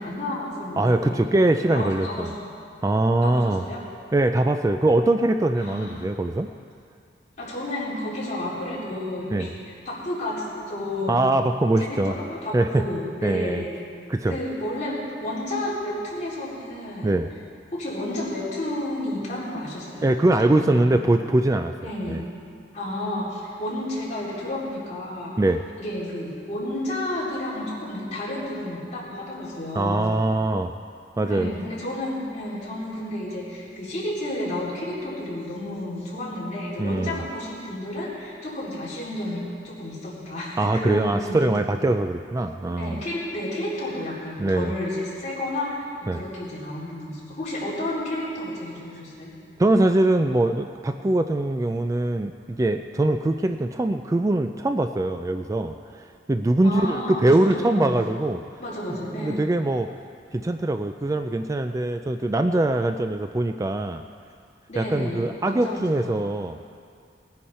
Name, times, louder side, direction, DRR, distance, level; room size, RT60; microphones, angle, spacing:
voice 1, 0.0-1.3 1.7-2.5 3.2-3.8 5.6-6.0 7.4-11.2 11.8-13.7 14.3-17.2 17.7-21.0 21.8-22.2 22.7-25.3 25.8-30.1 31.2-41.5 42.8-49.3 56.6-57.9 58.6-59.5 64.7-66.2, left 1 dB, 40° left, -8 dB, 3.9 m, -31 dB
voice 2, 0.8-2.3 2.8-3.6 4.1-6.5 9.3-9.5 11.1-12.2 12.5-12.8 13.2-13.6 14.1-14.4 17.0-17.3 20.0-22.2 25.4-25.6 29.8-30.7 31.2-31.5 36.8-37.2 40.6-43.0 44.4-44.7 46.1-46.2 49.6-58.4 58.9-59.9 60.3-64.0 64.8-66.6, right 2 dB, 20° right, 7 dB, 0.3 m, -22 dB
19.5 x 10.0 x 4.3 m, 2.3 s
head